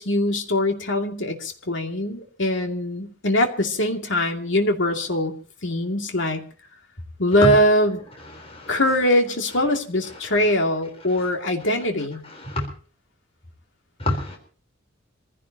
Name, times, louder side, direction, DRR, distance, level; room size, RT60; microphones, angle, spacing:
voice 1, 0.0-5.3 5.6-6.4 7.2-8.0 8.7-12.2, left 1 dB, 65° left, 3 dB, 2.5 m, -22 dB
voice 2, 8.4-8.7 12.4-12.6 14.0-14.4, left 1 dB, 30° left, 2 dB, 4.0 m, -25 dB
26.0 x 16.0 x 2.9 m, 0.39 s
head